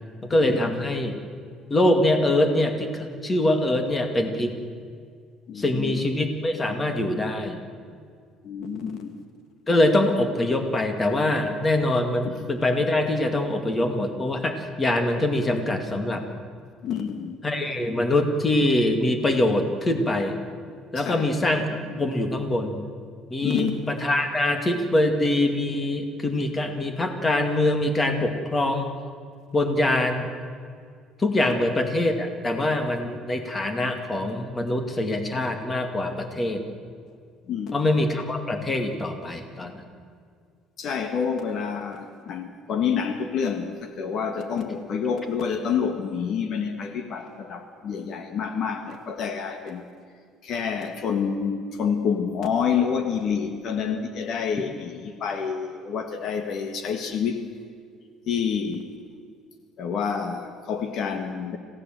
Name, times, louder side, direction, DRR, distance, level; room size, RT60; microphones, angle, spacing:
voice 1, 0.3-1.2 1.7-4.6 5.6-7.6 9.7-16.2 17.4-20.4 20.9-21.6 22.0-22.8 23.3-28.9 29.5-30.3 31.2-36.6 37.7-39.8, left 1 dB, 20° left, 6 dB, 2.2 m, -24 dB
voice 2, 5.5-6.1 8.4-9.2 12.2-12.4 16.8-17.4 21.0-21.3 21.7-22.1 23.4-23.8 31.4-31.6 37.5-38.1 40.8-49.8 50.4-57.4 58.3-58.9 59.8-61.6, left 6 dB, 55° left, 7 dB, 1.7 m, -28 dB
26.5 x 16.5 x 7.7 m, 2.1 s
cardioid pair, 135°, 0 cm